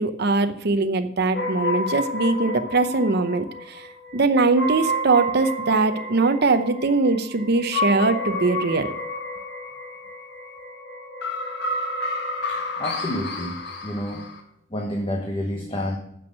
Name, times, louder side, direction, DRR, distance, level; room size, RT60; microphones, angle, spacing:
voice 1, 0.0-3.9 4.1-8.9, right 3 dB, 55° right, 9 dB, 0.8 m, -21 dB
sound 1, 1.3-14.4, left 1 dB, 55° left, 1.5 m, -30 dB
voice 2, 12.5-14.3 14.7-16.0, left 1 dB, 25° left, 1 dB, 1.2 m, -29 dB
9.2 x 6.3 x 6.1 m, 0.75 s
head